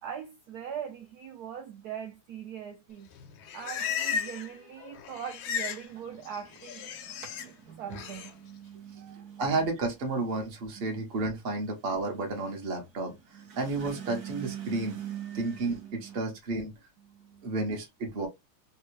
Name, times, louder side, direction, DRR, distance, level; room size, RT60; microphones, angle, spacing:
voice 1, 0.0-3.1 3.5-6.9 7.4-9.7 13.1-13.6 17.0-17.6 18.1-18.3, right 8 dB, 75° right, 0.8 m, -42 dB
Livestock farm animals working animals, 3.1-4.6 4.8-5.9 6.1-7.5 7.9-8.3, left 7 dB, 85° left, 1.4 m, -35 dB
sound 1, 5.9-16.2, right 10 dB, 55° right, 1.4 m, -44 dB
voice 2, 9.4-13.1 13.6-15.0 15.3-16.7 17.4-18.3, right 3 dB, 40° right, 0.9 m, -31 dB
3.4 x 2.3 x 3.0 m
omnidirectional pair, 2.2 m